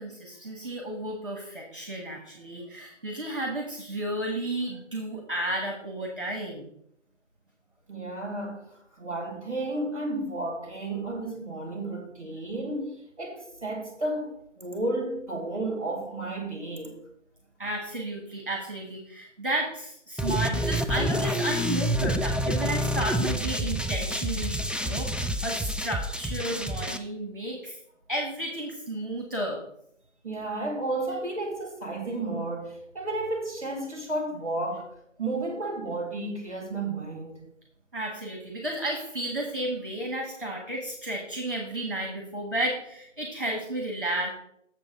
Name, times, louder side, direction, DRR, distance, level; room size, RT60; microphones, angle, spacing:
voice 1, 0.0-6.7 17.6-27.8 28.1-29.6 37.9-44.3, right 1 dB, 45° right, 1.4 m, -32 dB
voice 2, 7.9-8.6 9.0-14.3 14.6-16.9 30.2-34.9 35.2-37.4, right 2 dB, 25° right, 1.8 m, -32 dB
sound 1, 20.2-27.0, equal, 5° right, 0.3 m, -28 dB
7.5 x 7.1 x 3.8 m
figure-of-eight pair, 175°, 38 cm